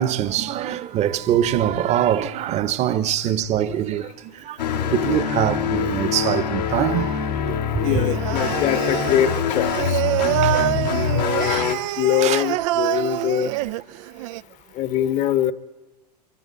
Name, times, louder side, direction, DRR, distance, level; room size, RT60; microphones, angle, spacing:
voice 1, 0.0-4.1 4.4-4.6 4.9-7.9 10.4-10.6 12.2-12.4 12.9-13.2, right 11 dB, 35° right, 1.2 m, -23 dB
sound 1, 4.6-11.7, left 8 dB, 80° left, 2.5 m, -24 dB
voice 2, 7.8-10.0 11.1-13.5 14.7-15.5, left 11 dB, 35° left, 1.3 m, -23 dB
Singing, 7.8-14.4, right 16 dB, 50° right, 0.6 m, -26 dB
25.5 x 24.5 x 4.2 m
hypercardioid pair, 105°, 21 cm